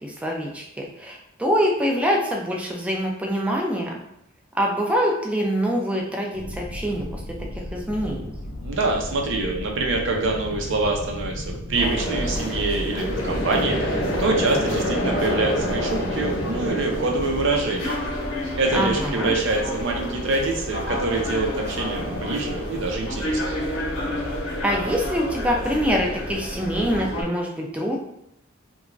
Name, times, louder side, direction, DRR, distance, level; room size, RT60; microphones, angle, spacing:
voice 1, 0.0-4.0 4.5-7.2 7.7-8.3 18.7-19.3 24.6-28.0, equal, 5° right, -1 dB, 0.4 m, -25 dB
sound 1, 6.3-12.7, left 1 dB, 65° left, 0.5 m, -35 dB
voice 2, 8.6-18.0 18.5-23.5, right 3 dB, 65° right, 1 dB, 0.6 m, -25 dB
sound 2, 11.7-27.2, equal, 85° left, 0.8 m, -28 dB
2.9 x 2.3 x 2.5 m, 0.81 s
head